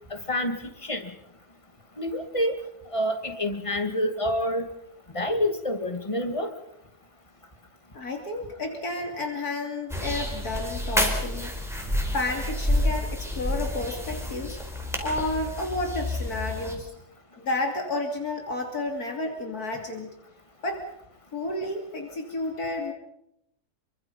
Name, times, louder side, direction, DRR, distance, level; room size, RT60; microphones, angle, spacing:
voice 1, 0.1-1.1 2.0-2.6 2.9-4.7 5.1-6.5, left 1 dB, 20° left, 6 dB, 2.5 m, -27 dB
voice 2, 7.9-11.5 12.1-14.6 15.0-16.9 17.3-20.1 20.6-20.8 21.3-22.9, left 2 dB, 70° left, 3 dB, 3.3 m, -31 dB
sound 1, 9.9-16.7, left 1 dB, ahead, 4.6 m, -29 dB
27.5 x 24.0 x 5.6 m, 0.79 s
omnidirectional pair, 1.7 m